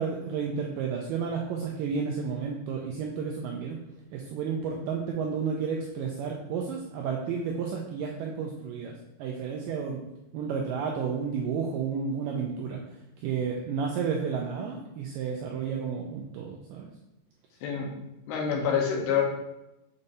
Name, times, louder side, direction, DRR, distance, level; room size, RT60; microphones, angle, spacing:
voice 1, 0.0-3.8 4.1-8.9 9.2-10.0 10.3-12.8 13.2-16.9, right 6 dB, 85° right, 0 dB, 2.0 m, -31 dB
voice 2, 17.6-17.9 18.3-19.2, left 7 dB, 80° left, 0 dB, 2.9 m, -26 dB
6.9 x 5.3 x 2.6 m, 0.94 s
omnidirectional pair, 4.5 m